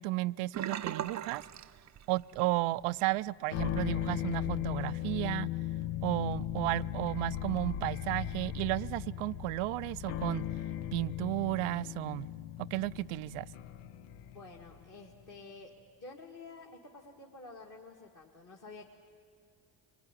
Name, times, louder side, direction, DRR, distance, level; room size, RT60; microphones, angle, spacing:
voice 1, 0.0-1.4 2.1-5.5 6.0-10.5 10.9-12.3 12.6-13.5, right 18 dB, 85° right, 17 dB, 0.6 m, -33 dB
Sink (filling or washing), 0.5-2.5 2.8-3.1 3.5-3.6, right 10 dB, 35° right, 0.5 m, -39 dB
sound 1, 3.5-14.9, left 11 dB, 80° left, 0.8 m, -37 dB
voice 2, 14.3-15.7 16.0-18.9, left 3 dB, 35° left, -1 dB, 2.0 m, -50 dB
24.0 x 19.5 x 9.9 m, 2.3 s
cardioid pair, 75°, 49 cm